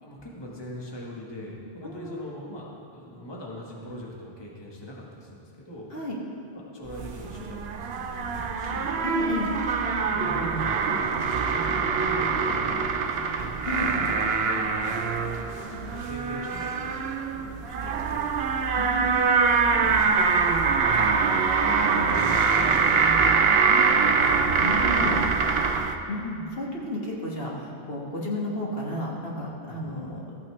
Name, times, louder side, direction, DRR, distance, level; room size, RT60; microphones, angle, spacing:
voice 1, 0.0-2.6 2.9-5.9 6.5-8.9 10.1-18.6 19.7-20.8 21.3-23.3 29.7-29.9, equal, 25° left, -3 dB, 1.2 m, -41 dB
voice 2, 1.8-2.3 5.9-6.2 9.0-9.5 13.7-13.9 18.7-19.1 23.7-25.2 26.1-30.2, left 1 dB, 65° left, -4 dB, 1.7 m, -33 dB
sound 1, 6.9-25.9, right 5 dB, 80° right, 0.9 m, -24 dB
14.0 x 8.7 x 3.2 m, 2.8 s
omnidirectional pair, 1.0 m